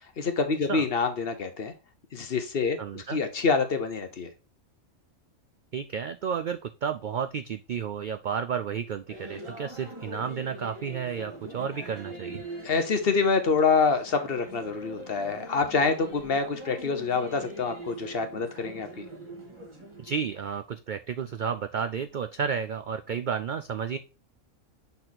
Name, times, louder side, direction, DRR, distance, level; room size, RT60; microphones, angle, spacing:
voice 1, 0.2-1.7 2.1-4.3 12.6-19.0, left 4 dB, 50° left, 1.1 m, -26 dB
voice 2, 2.8-3.2 5.7-12.4 20.0-24.0, right 7 dB, 75° right, 0.4 m, -32 dB
sound 1, 9.1-20.3, right 1 dB, 20° right, 1.6 m, -43 dB
6.6 x 4.2 x 4.0 m
omnidirectional pair, 1.4 m